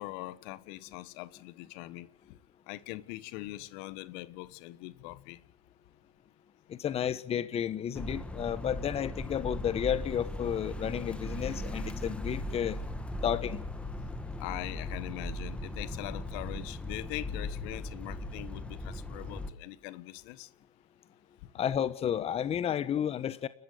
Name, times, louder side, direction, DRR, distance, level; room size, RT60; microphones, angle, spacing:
voice 1, 0.0-2.4 2.7-5.4 14.4-20.5, left 18 dB, 60° left, 1.4 m, -42 dB
voice 2, 6.7-12.8 13.2-13.6 21.5-23.5, left 9 dB, 30° left, 1.3 m, -32 dB
sound 1, 7.9-19.5, left 1 dB, 5° left, 2.1 m, -38 dB
29.5 x 14.0 x 8.1 m
hypercardioid pair, 95°, 20 cm